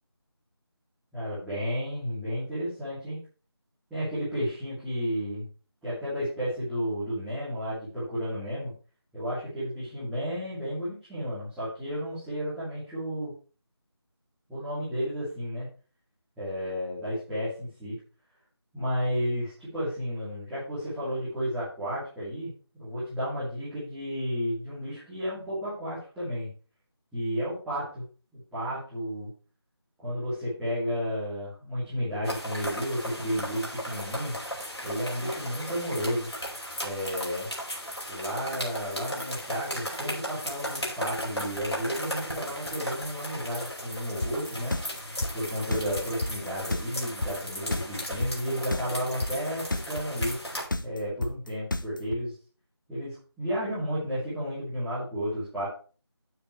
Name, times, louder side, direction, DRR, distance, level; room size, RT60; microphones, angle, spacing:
voice 1, 1.1-3.2 3.9-5.5 5.8-8.7 9.1-13.3 14.5-15.7 16.4-18.0 18.7-26.5 27.1-28.0 28.5-29.3 30.0-34.3 34.8-36.3 36.8-37.5 38.1-44.8 45.3-50.4 50.8-52.3 52.9-55.7, equal, ahead, -17 dB, 2.9 m, -32 dB
sound 1, 32.2-50.7, equal, 80° left, 5.4 m, -36 dB
sound 2, 44.2-52.2, left 2 dB, 50° left, 0.9 m, -30 dB
10.0 x 9.5 x 3.3 m, 0.37 s
figure-of-eight pair, 165°, 14 cm